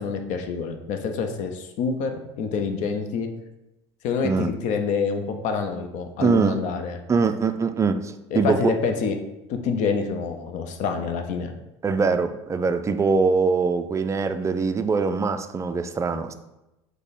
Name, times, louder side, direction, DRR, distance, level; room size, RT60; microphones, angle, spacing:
voice 1, 0.0-3.3 4.0-7.0 8.3-9.2 9.5-11.5, left 5 dB, 55° left, 6 dB, 0.7 m, -27 dB
voice 2, 6.2-6.6 7.1-8.7 11.8-16.3, right 4 dB, 20° right, 9 dB, 0.4 m, -23 dB
4.8 x 2.2 x 4.1 m, 0.95 s
hypercardioid pair, 80°, 15 cm